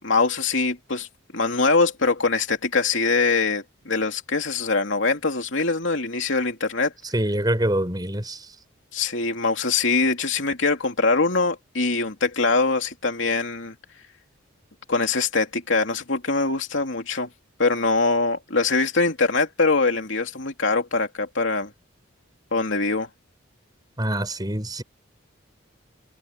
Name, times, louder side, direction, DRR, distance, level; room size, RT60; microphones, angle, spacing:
voice 1, 0.0-1.1 1.3-6.9 8.9-13.7 14.9-17.3 17.6-21.7 22.5-23.1, left 3 dB, 70° left, 2.9 m, -23 dB
voice 2, 7.1-8.5 24.0-24.8, right 1 dB, 20° right, 4.6 m, -25 dB
head